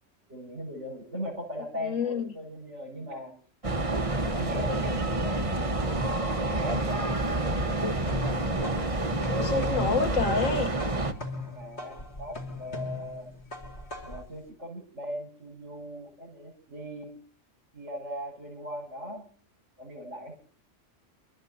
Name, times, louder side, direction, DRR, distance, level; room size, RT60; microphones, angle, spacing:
voice 1, 0.3-3.3 4.3-5.6 6.4-7.2 11.4-13.3 14.0-17.1 17.7-19.3 19.8-20.3, equal, 65° right, 6.2 m, -39 dB
voice 2, 1.8-2.3 7.5-7.9 9.3-10.7, left 4 dB, 85° left, 1.6 m, -28 dB
sound 1, 3.6-11.1, right 2 dB, 25° right, 1.2 m, -28 dB
sound 2, 8.1-14.3, left 2 dB, 55° left, 2.8 m, -39 dB
29.0 x 13.0 x 2.8 m
omnidirectional pair, 1.3 m